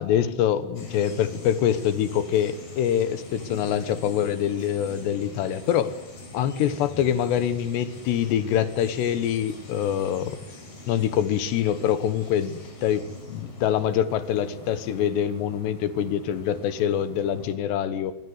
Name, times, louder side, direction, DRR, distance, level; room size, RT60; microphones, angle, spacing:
voice 1, 0.0-5.9 6.3-10.4 10.8-13.0 13.3-18.1, left 9 dB, 70° left, 13 dB, 3.0 m, -25 dB
sound 1, 0.7-17.5, left 2 dB, 45° left, 7.6 m, -43 dB
25.5 x 23.5 x 8.0 m, 0.89 s
omnidirectional pair, 5.7 m